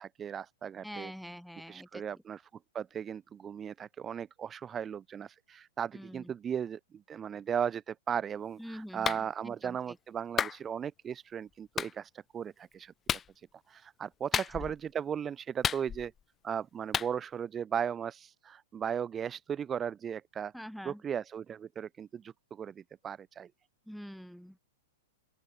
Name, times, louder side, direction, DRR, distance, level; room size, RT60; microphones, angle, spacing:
voice 1, 0.0-1.1 1.6-2.5 2.7-12.9 13.3-16.1 16.4-23.5, right 8 dB, 20° right, 1.0 m, -37 dB
voice 2, 0.8-2.0 5.9-6.3 8.6-9.2 9.4-9.8 14.6-14.7 20.5-21.0 23.9-24.6, equal, ahead, 5.7 m, -45 dB
Clapping, 9.0-9.2 10.4-10.6 11.8-11.9 13.1-13.3 14.3-14.8 15.6-16.2 16.9-17.1, left 7 dB, 20° left, 0.5 m, -31 dB
open air
figure-of-eight pair, 105°, 0 cm